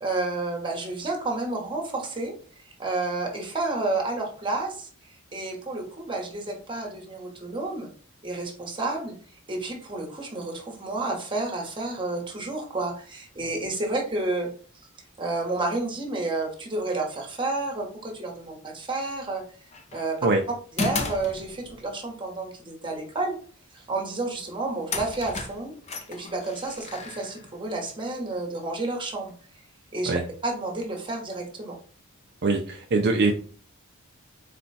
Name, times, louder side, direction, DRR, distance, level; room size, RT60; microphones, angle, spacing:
voice 1, 0.0-2.3 2.6-4.9 5.3-7.9 8.2-9.1 9.5-14.5 15.2-19.4 19.9-20.2 20.7-23.4 23.7-25.7 26.1-29.3 29.9-31.8, right 2 dB, 25° right, 0 dB, 1.1 m, -30 dB
sound 1, 19.7-20.1 20.8-21.9 24.3-24.4 24.9-27.9, left 3 dB, 30° left, 0.5 m, -34 dB
voice 2, 32.4-33.3, right 3 dB, 50° right, 2 dB, 0.5 m, -22 dB
4.2 x 2.2 x 4.0 m, 0.42 s
head